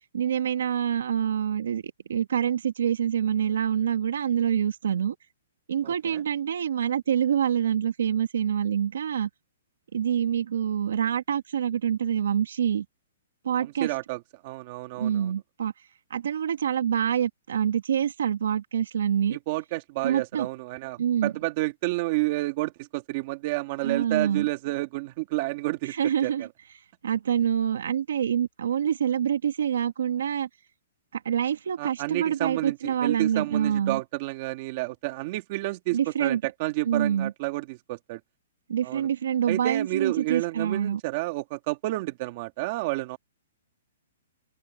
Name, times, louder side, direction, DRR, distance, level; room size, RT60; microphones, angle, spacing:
voice 1, 0.1-5.2 5.7-9.3 9.9-12.9 13.4-13.9 15.0-15.7 16.1-19.4 20.0-20.5 21.0-21.3 23.8-24.5 25.9-26.5 27.0-30.5 31.1-34.0 35.9-36.4 36.9-37.3 38.7-41.0, right 9 dB, 70° right, 1.8 m, -26 dB
voice 2, 5.8-6.2 13.6-15.3 19.3-25.9 26.2-26.5 31.8-38.2 38.8-39.1 39.5-43.2, right 21 dB, 30° right, 2.2 m, -30 dB
hypercardioid pair, 170°, 0 cm